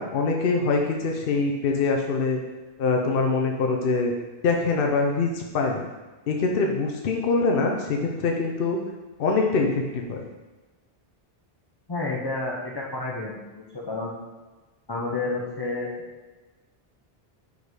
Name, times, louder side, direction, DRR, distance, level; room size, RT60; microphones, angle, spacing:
voice 1, 0.0-2.4 2.8-4.1 4.4-5.9 6.3-8.8 9.2-10.2, left 3 dB, 65° left, 1 dB, 0.9 m, -24 dB
voice 2, 11.9-14.1 14.9-15.9, left 3 dB, 25° left, -4 dB, 0.6 m, -30 dB
5.1 x 4.0 x 4.7 m, 1.2 s
omnidirectional pair, 1.1 m